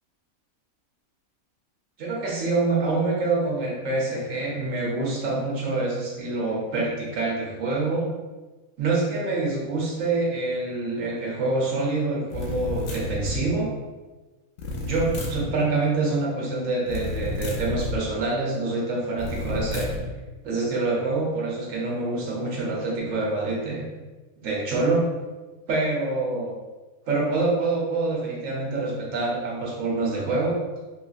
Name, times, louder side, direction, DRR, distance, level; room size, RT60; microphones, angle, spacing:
voice 1, 2.0-8.1 8.8-13.7 14.8-19.9 20.4-23.8 24.4-25.0 25.7-26.5 27.1-30.6, right 3 dB, 65° right, -3 dB, 1.1 m, -26 dB
sound 1, 12.3-13.5 14.6-15.5 16.9-18.0 19.2-20.1, left 2 dB, 75° left, 1.0 m, -30 dB
3.1 x 2.8 x 2.4 m, 1.2 s
omnidirectional pair, 1.5 m